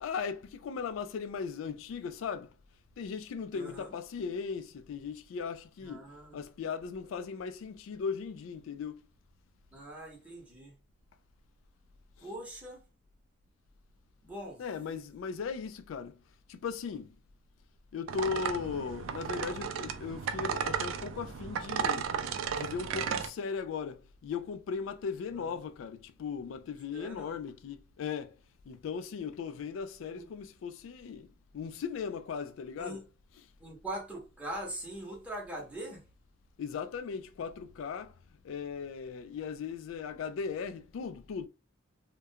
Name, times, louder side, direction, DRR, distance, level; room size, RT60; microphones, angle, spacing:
voice 1, 0.0-2.5 3.0-6.0 6.3-9.0 14.6-16.2 16.5-17.1 17.9-22.1 22.5-28.3 28.7-31.3 31.5-33.0 36.6-38.1 38.4-41.5, left 6 dB, 85° left, 0.3 m, -37 dB
voice 2, 3.5-3.9 5.8-6.4 9.7-10.7 12.2-12.8 14.2-14.6 25.3-25.6 26.9-27.3 30.1-30.3 32.8-33.0 33.6-36.0, right 1 dB, 5° right, 0.9 m, -42 dB
sound 1, 18.1-23.3, right 7 dB, 75° right, 0.3 m, -34 dB
2.3 x 2.2 x 2.7 m
head